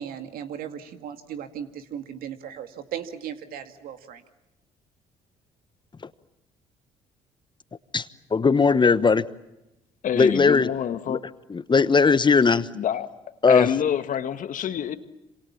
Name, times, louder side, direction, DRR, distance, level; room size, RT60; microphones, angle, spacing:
voice 1, 0.0-4.2, right 9 dB, 70° right, 8 dB, 2.2 m, -37 dB
voice 2, 8.3-9.2 10.2-10.7 11.1-11.2 11.5-12.7 13.4-13.7, left 4 dB, 30° left, 15 dB, 1.2 m, -18 dB
voice 3, 10.0-11.2 12.5-13.1 13.5-15.0, left 9 dB, 55° left, 10 dB, 1.7 m, -27 dB
27.0 x 26.5 x 7.3 m, 0.92 s
hypercardioid pair, 60°, 16 cm